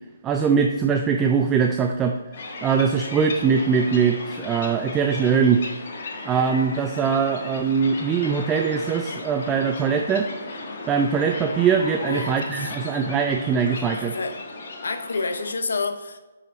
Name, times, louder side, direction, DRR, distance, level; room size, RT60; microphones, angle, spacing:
voice 1, 0.2-2.2 2.6-5.6 6.3-10.3 10.9-14.2, right 6 dB, 15° right, 4 dB, 0.4 m, -22 dB
sound 1, 2.3-15.5, left 2 dB, 55° left, 1.3 m, -35 dB
voice 2, 12.1-12.7 14.0-14.4 14.8-16.2, left 4 dB, 75° left, 9 dB, 0.7 m, -29 dB
7.3 x 5.7 x 3.1 m, 1.2 s
hypercardioid pair, 145°, 0 cm